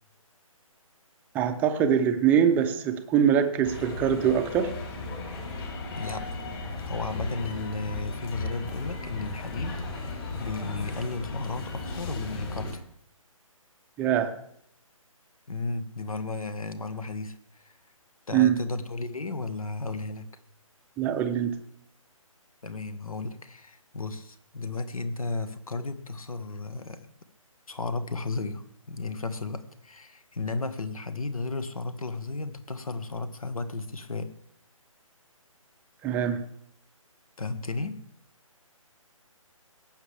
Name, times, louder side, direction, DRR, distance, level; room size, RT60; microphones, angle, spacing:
voice 1, 1.3-4.7 14.0-14.3 18.3-18.6 21.0-21.5 36.0-36.4, right 8 dB, 10° right, 7 dB, 0.6 m, -23 dB
sound 1, 3.6-12.7, left 3 dB, 40° left, 3.6 m, -36 dB
voice 2, 5.9-6.4 6.9-12.8 15.5-17.7 18.3-20.3 22.6-27.1 27.7-34.3 37.4-38.0, left 3 dB, 80° left, 11 dB, 1.4 m, -34 dB
18.0 x 8.6 x 3.5 m, 0.67 s
figure-of-eight pair, 150°, 18 cm